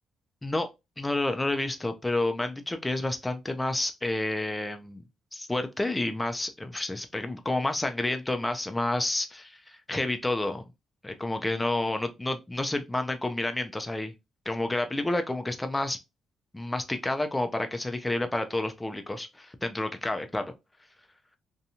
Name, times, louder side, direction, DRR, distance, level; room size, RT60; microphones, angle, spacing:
voice 1, 1.0-5.0 5.3-10.7 11.0-14.1 14.5-16.0 16.5-20.5, left 2 dB, 15° left, 0.4 m, -30 dB
2.6 x 2.2 x 2.8 m
cardioid pair, 90°, 0 cm